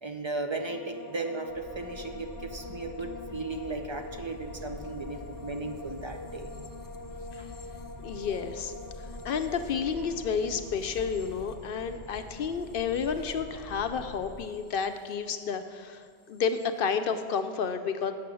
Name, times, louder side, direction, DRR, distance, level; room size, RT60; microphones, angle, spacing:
voice 1, 0.0-6.5 7.4-7.5, right 3 dB, 35° right, 5 dB, 0.6 m, -36 dB
sound 1, 0.5-15.8 16.0-16.7, left 3 dB, 30° left, 0.4 m, -46 dB
sound 2, 1.5-14.3, left 1 dB, 80° right, 2.9 m, -46 dB
voice 2, 8.0-8.7 9.2-16.0 16.3-18.1, left 6 dB, 65° left, 8 dB, 0.7 m, -31 dB
8.4 x 6.7 x 6.1 m, 2.4 s
omnidirectional pair, 1.1 m